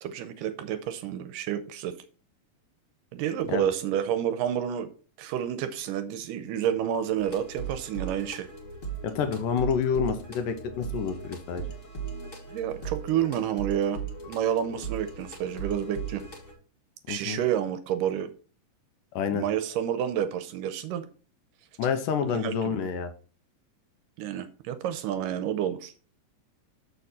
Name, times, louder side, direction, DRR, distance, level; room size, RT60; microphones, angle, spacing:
voice 1, 0.0-2.0 3.1-4.9 5.2-8.5 12.5-14.0 14.3-16.2 17.1-18.3 19.3-21.0 22.2-22.9 24.2-25.9, right 10 dB, 80° right, 10 dB, 2.1 m, -29 dB
sound 1, 7.2-16.5, right 6 dB, 35° left, 1.4 m, -38 dB
voice 2, 9.0-11.7 17.1-17.4 19.1-19.5 21.8-23.1, left 7 dB, 75° left, 8 dB, 2.3 m, -28 dB
6.8 x 6.5 x 4.2 m, 0.39 s
omnidirectional pair, 4.1 m